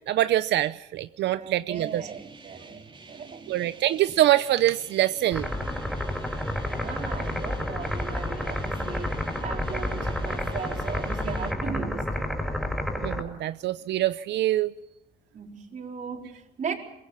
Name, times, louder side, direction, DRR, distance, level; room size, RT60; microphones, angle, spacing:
voice 1, 0.1-2.1 3.5-5.5 13.0-14.7, right 13 dB, 75° right, 13 dB, 0.7 m, -24 dB
voice 2, 1.4-3.7 6.6-9.1 9.4-12.4 15.3-16.7, right 6 dB, 45° right, 2 dB, 4.3 m, -37 dB
sound 1, 1.7-11.5, right 3 dB, 25° right, 3.3 m, -48 dB
sound 2, 5.3-13.2, left 1 dB, ahead, 5.7 m, -30 dB
24.0 x 21.5 x 5.8 m, 0.92 s
cardioid pair, 120°, 19 cm